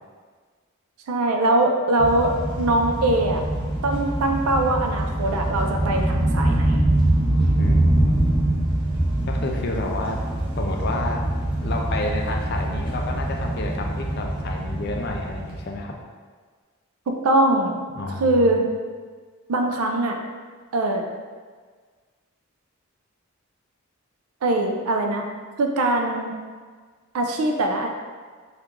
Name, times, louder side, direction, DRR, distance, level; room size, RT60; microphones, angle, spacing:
voice 1, 1.1-2.3 2.6-3.4 3.8-6.8 17.1-17.8 18.2-18.6 19.5-20.2 20.7-21.0 24.4-25.2 25.6-26.3 27.1-27.9, right 2 dB, 85° right, 3 dB, 0.4 m, -22 dB
sound 1, 2.0-15.8, right 1 dB, 25° right, 0.6 m, -24 dB
voice 2, 7.6-8.6 9.3-10.2 10.6-11.2 11.6-15.9 18.0-18.6, left 2 dB, 45° left, 1 dB, 0.4 m, -30 dB
2.9 x 2.4 x 3.5 m, 1.5 s
head